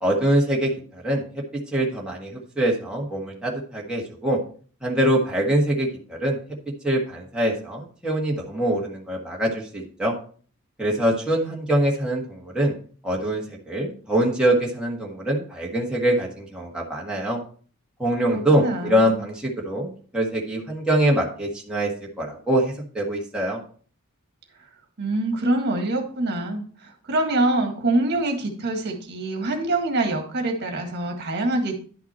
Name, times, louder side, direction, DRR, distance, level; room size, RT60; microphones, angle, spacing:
voice 1, 0.0-1.2 1.7-4.4 4.8-6.4 6.8-10.1 10.8-12.7 13.0-17.4 18.0-21.9 22.2-23.6, right 1 dB, 5° right, -3 dB, 1.6 m, -24 dB
voice 2, 18.3-19.2 25.0-31.7, right 2 dB, 50° right, 2 dB, 1.8 m, -25 dB
11.0 x 5.9 x 4.4 m, 0.43 s
head